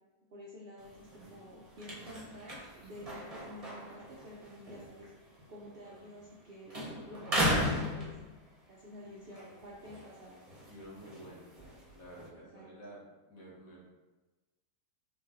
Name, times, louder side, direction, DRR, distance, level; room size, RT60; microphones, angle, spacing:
voice 1, 0.3-6.8 7.1-8.3 8.7-10.4 12.3-12.7, left 1 dB, 55° right, -5 dB, 0.6 m, -50 dB
sound 1, 0.8-6.4 6.7-8.7 9.2-12.3, equal, 25° right, 1.0 m, -37 dB
voice 2, 5.8-6.2 6.9-7.3 9.0-9.6 10.7-11.6 11.9-13.9, right 1 dB, 65° left, -5 dB, 1.6 m, -52 dB
4.1 x 3.7 x 3.0 m, 1.2 s
omnidirectional pair, 1.6 m